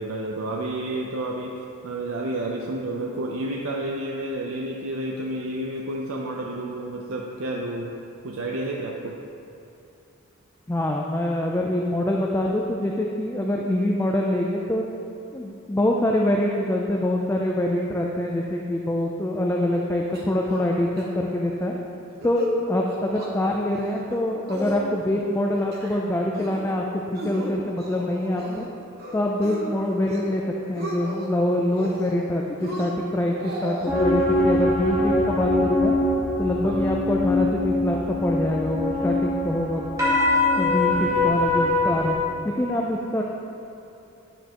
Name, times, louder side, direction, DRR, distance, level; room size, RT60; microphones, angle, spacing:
voice 1, 0.0-7.9 8.2-9.2 36.6-36.9, right 1 dB, 65° right, -1 dB, 0.5 m, -30 dB
voice 2, 10.7-14.8 15.3-21.8 22.2-26.8 27.1-28.7 29.1-30.4 30.7-35.9 36.4-39.9 40.6-42.2 42.4-43.2, left 1 dB, 10° left, -1 dB, 0.3 m, -25 dB
sound 1, 20.1-20.7 21.0-21.1 21.4-21.7 22.1-22.6 22.9-23.3 23.7-24.2 24.5-25.2 25.5-26.0 26.3-26.7 27.2-28.7 29.0-29.6 30.0-30.4 30.6-31.3 31.7-32.3 32.6-33.9, equal, 45° right, 1.1 m, -34 dB
sound 2, 33.9-42.1, left 2 dB, 15° right, 1.3 m, -23 dB
9.7 x 7.1 x 2.9 m, 2.7 s
head